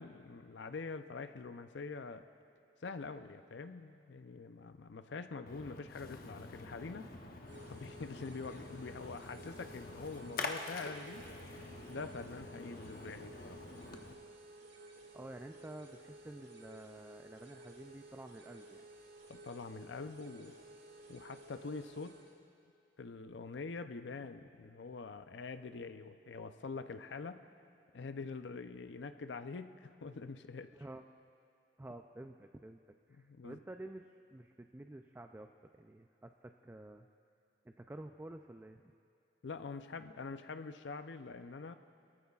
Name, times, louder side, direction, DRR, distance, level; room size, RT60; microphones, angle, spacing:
voice 1, 0.0-2.2 2.8-7.1 7.6-11.2 11.9-13.7 19.3-20.5 21.1-22.2 23.0-27.4 27.9-30.7 33.2-33.6 39.4-41.8, left 4 dB, 85° left, 10 dB, 0.5 m, -45 dB
Splash splatter, 5.5-14.1, left 3 dB, 55° left, 0.9 m, -46 dB
sound 1, 7.4-22.4, right 2 dB, 80° right, 1.8 m, -55 dB
voice 2, 14.8-18.9 30.7-31.1 31.8-32.8 33.1-35.5 35.7-37.1 37.6-38.8, right 1 dB, 10° right, 5 dB, 0.3 m, -50 dB
23.0 x 14.0 x 2.4 m, 2.5 s
head